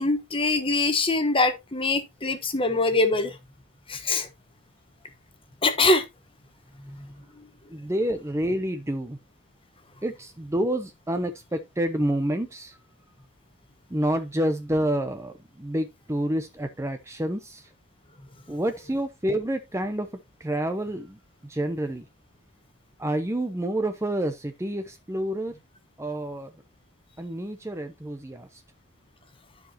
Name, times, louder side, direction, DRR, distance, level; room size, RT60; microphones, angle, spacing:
voice 1, 0.0-3.4 3.9-4.3 5.6-6.0, left 2 dB, 25° left, 1.2 m, -23 dB
voice 2, 7.7-9.2 10.0-12.8 13.9-17.7 18.5-20.1 20.4-22.0 23.0-25.5 26.0-26.5 27.2-28.6, right 1 dB, 15° right, 0.7 m, -28 dB
13.0 x 4.8 x 2.9 m
head